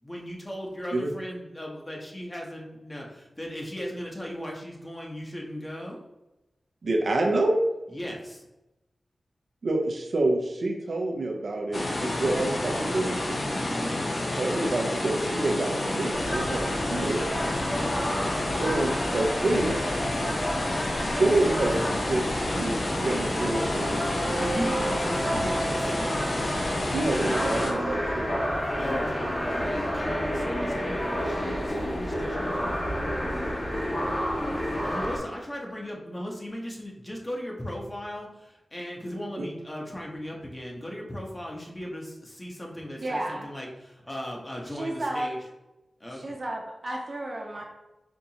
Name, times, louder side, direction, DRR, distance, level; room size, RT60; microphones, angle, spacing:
voice 1, 0.0-6.0 7.9-8.4 13.6-14.0 24.4-26.6 28.8-32.7 34.8-45.4 46.0-46.2, equal, 30° left, -1 dB, 0.9 m, -37 dB
voice 2, 6.8-7.6 9.6-13.1 14.4-17.2 18.6-19.8 21.0-21.8 22.1-24.0 26.9-28.4 39.4-39.5, right 2 dB, 75° right, 1 dB, 0.5 m, -27 dB
sound 1, 11.7-27.7, left 1 dB, 65° left, 0.7 m, -29 dB
sound 2, 16.1-35.2, equal, 45° left, 1.3 m, -30 dB
voice 3, 43.0-43.5 44.7-45.3 46.1-47.6, right 1 dB, 60° right, -1 dB, 0.9 m, -32 dB
4.4 x 2.6 x 2.8 m, 0.97 s
cardioid pair, 45°, 0 cm